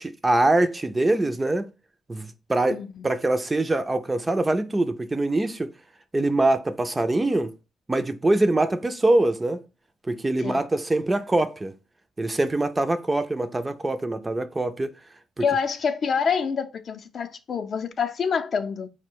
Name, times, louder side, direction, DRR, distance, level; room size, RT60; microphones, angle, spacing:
voice 1, 0.0-1.7 2.1-5.7 6.1-7.5 7.9-9.6 10.1-11.7 12.2-14.9, right 2 dB, 20° right, 0.4 m, -23 dB
voice 2, 2.7-3.1 10.4-10.7 15.4-18.9, left 6 dB, 50° left, 0.5 m, -27 dB
4.5 x 2.1 x 4.4 m
cardioid pair, 90°, 0 cm